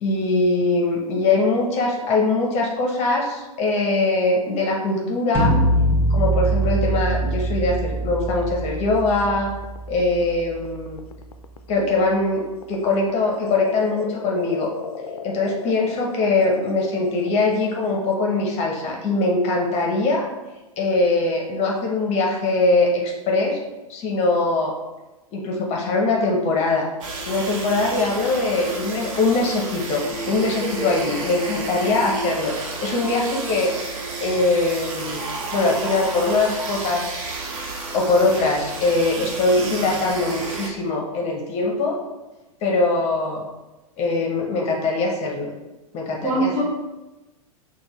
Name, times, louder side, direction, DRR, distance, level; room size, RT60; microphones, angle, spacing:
voice 1, 0.0-5.5 6.1-9.5 9.9-11.0 11.7-14.7 15.2-20.3 20.8-23.6 23.9-24.7 25.3-26.8 27.3-33.7 34.2-35.3 35.5-37.2 37.9-42.0 42.6-43.5 44.0-45.5 45.9-46.5, left 2 dB, 35° left, -1 dB, 0.9 m, -22 dB
sound 1, 5.3-11.3, right 1 dB, 15° left, 1.2 m, -23 dB
sound 2, 9.2-18.1, left 5 dB, 80° left, 0.4 m, -37 dB
sound 3, 27.0-40.7, right 3 dB, 60° right, 1.0 m, -31 dB
voice 2, 30.6-30.9 46.2-46.6, right 1 dB, 40° right, -3 dB, 1.4 m, -24 dB
6.3 x 2.3 x 3.0 m, 1.1 s
figure-of-eight pair, 100°, 19 cm